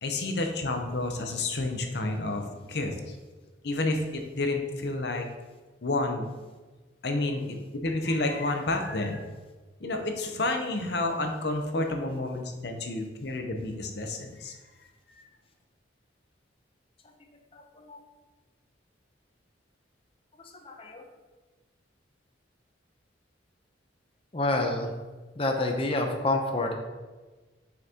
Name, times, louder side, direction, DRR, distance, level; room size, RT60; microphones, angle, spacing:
voice 1, 0.0-3.2 3.6-5.3 5.8-6.3 7.0-9.2 9.8-14.5 15.1-15.2, left 2 dB, 60° left, 4 dB, 0.8 m, -30 dB
voice 2, 20.6-21.0 24.3-24.9 25.4-26.7, left 2 dB, 30° left, 2 dB, 0.7 m, -28 dB
6.5 x 5.5 x 2.9 m, 1.3 s
head